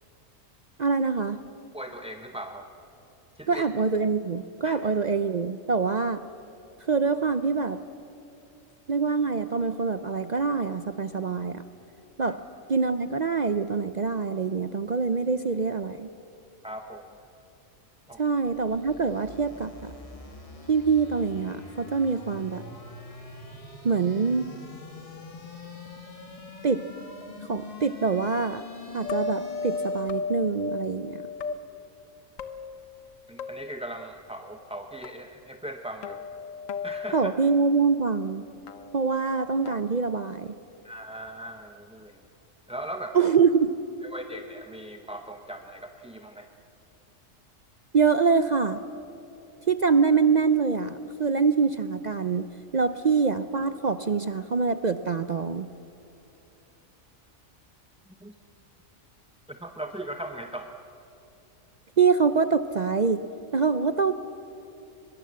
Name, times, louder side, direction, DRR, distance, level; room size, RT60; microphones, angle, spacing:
voice 1, 0.8-1.4 3.5-6.2 6.9-7.8 8.9-11.6 12.2-12.4 12.7-16.1 18.2-19.9 20.7-22.6 23.8-24.5 26.6-26.9 27.5-28.6 28.9-31.3 37.1-38.4 38.9-40.5 43.1-43.7 47.9-48.8 49.7-52.5 52.7-55.7 62.0-63.2 63.5-64.1, right 5 dB, 45° right, 11 dB, 0.6 m, -25 dB
voice 2, 1.7-2.7 3.3-3.6 4.6-4.8 12.2-12.4 16.6-17.1 18.1-18.2 33.3-36.2 36.8-37.3 40.8-42.2 42.7-43.2 44.0-46.5 58.2-58.3 59.5-60.7, right 1 dB, 5° right, 4 dB, 0.7 m, -39 dB
sound 1, 18.1-30.3, left 2 dB, 25° left, 2.1 m, -44 dB
sound 2, 29.0-31.5 32.4-33.1 33.4-33.8 35.0-35.1 36.0-37.3 38.7-39.7, left 4 dB, 80° left, 1.4 m, -34 dB
23.0 x 22.0 x 7.6 m, 2.9 s
omnidirectional pair, 1.4 m